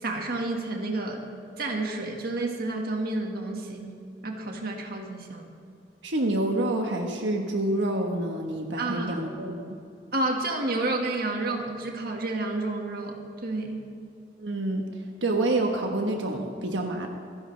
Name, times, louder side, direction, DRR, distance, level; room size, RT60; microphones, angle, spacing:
voice 1, 0.0-1.2 1.6-3.9 4.2-5.5 8.8-9.2 10.1-13.8, right 2 dB, 55° right, 2 dB, 1.8 m, -30 dB
voice 2, 6.0-9.8 14.4-14.8 15.2-17.1, right 1 dB, 85° right, 2 dB, 1.3 m, -27 dB
27.5 x 11.0 x 3.4 m, 2.5 s
head